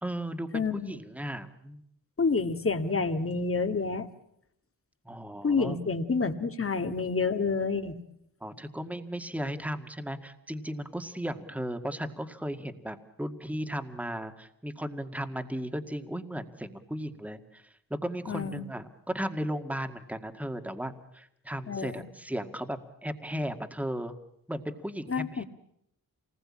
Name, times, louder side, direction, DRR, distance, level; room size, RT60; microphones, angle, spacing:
voice 1, 0.0-1.8 5.1-5.8 8.4-24.1 24.5-25.4, equal, 5° right, 7 dB, 2.0 m, -36 dB
voice 2, 0.5-0.9 2.2-4.1 5.4-8.0 18.3-18.7 21.7-22.0 25.1-25.4, left 4 dB, 40° left, 8 dB, 2.0 m, -28 dB
27.5 x 20.0 x 8.7 m, 0.75 s
wide cardioid pair, 105°, 34 cm